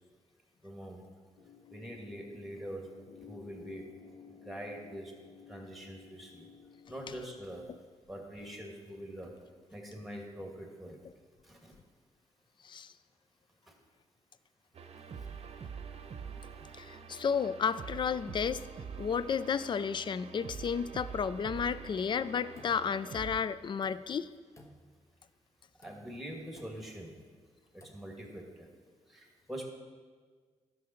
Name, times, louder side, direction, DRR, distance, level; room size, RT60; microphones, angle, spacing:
voice 1, 0.6-1.0 1.7-2.9 3.3-3.8 4.3-5.1 5.5-6.5 6.9-7.7 8.1-9.3 9.7-11.0 11.4-11.7 25.8-27.2 27.9-28.7 29.1-29.6, equal, ahead, 0 dB, 2.2 m, -44 dB
sound 1, 1.4-7.2, left 7 dB, 75° left, 0.9 m, -55 dB
sound 2, 14.7-23.4, right 6 dB, 55° right, 0.8 m, -45 dB
voice 2, 16.8-18.6 19.0-24.3, left 6 dB, 40° left, 16 dB, 0.4 m, -32 dB
sound 3, 22.2-23.3 23.7-24.3 24.5-25.2 25.7-26.3 26.5-27.1 27.7-28.2, left 1 dB, 25° left, 1.1 m, -58 dB
11.5 x 6.3 x 4.5 m, 1.5 s
cardioid pair, 70°, 12 cm